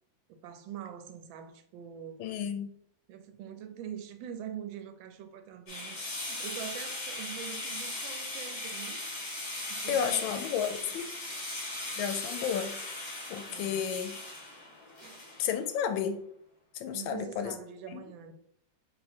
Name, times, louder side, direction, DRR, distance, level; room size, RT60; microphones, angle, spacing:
voice 1, 0.3-2.3 3.1-9.1 9.7-10.4 11.3-11.4 13.5-13.9 15.0-15.2 16.9-18.3, right 9 dB, 90° right, 1.4 m, -44 dB
voice 2, 2.2-2.7 9.9-11.1 12.0-12.8 13.3-14.1 15.4-16.2 16.7-17.5 17.9-18.0, left 8 dB, 90° left, 1.3 m, -32 dB
sound 1, 5.7-15.7, left 2 dB, 55° left, 1.8 m, -38 dB
3.5 x 2.9 x 4.3 m
omnidirectional pair, 2.1 m